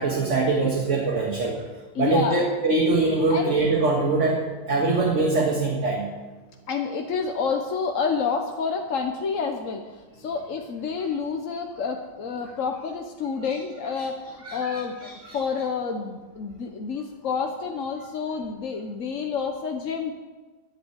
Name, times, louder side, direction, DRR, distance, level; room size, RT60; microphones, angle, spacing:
voice 1, 0.0-1.6 2.0-4.4 4.7-6.1 14.4-15.4, right 3 dB, 40° right, -1 dB, 1.8 m, -23 dB
voice 2, 1.9-2.4 3.3-3.5 6.7-20.1, left 5 dB, 50° left, 4 dB, 1.0 m, -29 dB
11.0 x 10.5 x 8.1 m, 1.3 s
omnidirectional pair, 2.3 m